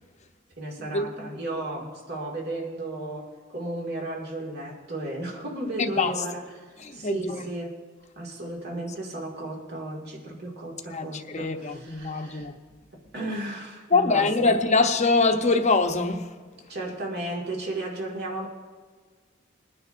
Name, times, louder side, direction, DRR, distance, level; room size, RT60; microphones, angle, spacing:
voice 1, 0.6-7.7 8.2-12.5 13.1-14.6 16.7-18.5, right 1 dB, 55° right, 2.1 m, -34 dB
voice 2, 5.8-6.1 6.8-7.5 8.7-8.8 10.9-12.5 13.9-16.3, left 3 dB, 35° left, 0.8 m, -24 dB
22.0 x 9.6 x 2.6 m
head